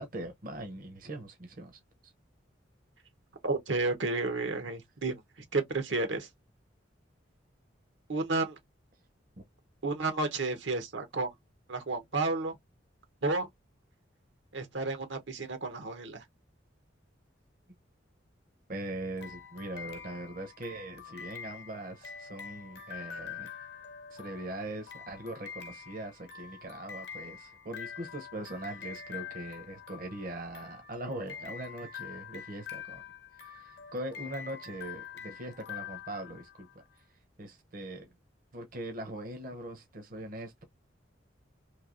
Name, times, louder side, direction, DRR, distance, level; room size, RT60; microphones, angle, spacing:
voice 1, 0.0-2.1 18.7-23.5 24.1-33.1 33.3-36.7 36.9-37.0 37.4-38.1 38.5-40.6, right 1 dB, 50° right, 0.7 m, -41 dB
voice 2, 3.4-5.2 5.5-6.3 8.1-8.6 9.8-11.3 11.7-12.5 13.2-13.5 14.5-16.2, right 3 dB, 80° right, 0.9 m, -31 dB
sound 1, 19.2-36.8, left 7 dB, 60° left, 0.8 m, -45 dB
3.2 x 2.7 x 2.5 m
head